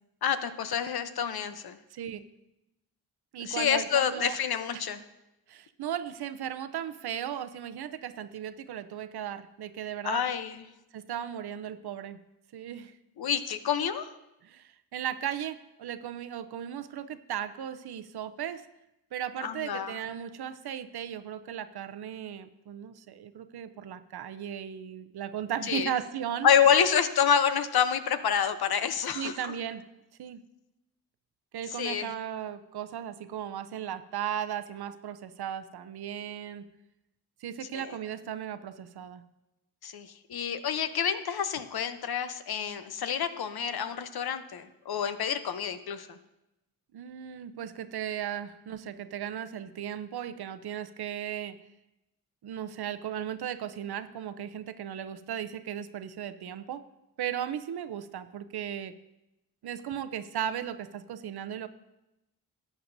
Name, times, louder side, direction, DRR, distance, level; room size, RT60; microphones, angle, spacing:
voice 1, 0.2-1.8 3.4-5.0 10.0-10.6 13.2-14.1 19.4-20.0 25.7-25.9 26.4-29.5 31.7-32.1 37.7-37.9 39.8-46.2, left 8 dB, 65° left, 11 dB, 0.8 m, -28 dB
voice 2, 1.9-2.2 3.3-4.4 4.7-4.8 5.5-10.2 10.9-12.2 12.5-12.9 14.4-18.6 19.1-26.5 29.1-29.8 30.2-30.4 31.5-36.7 37.4-39.2 46.9-51.6 52.4-56.8 57.2-58.9 59.6-61.7, right 10 dB, 70° right, 12 dB, 0.6 m, -36 dB
14.0 x 9.0 x 2.6 m, 0.94 s
cardioid pair, 50°, 40 cm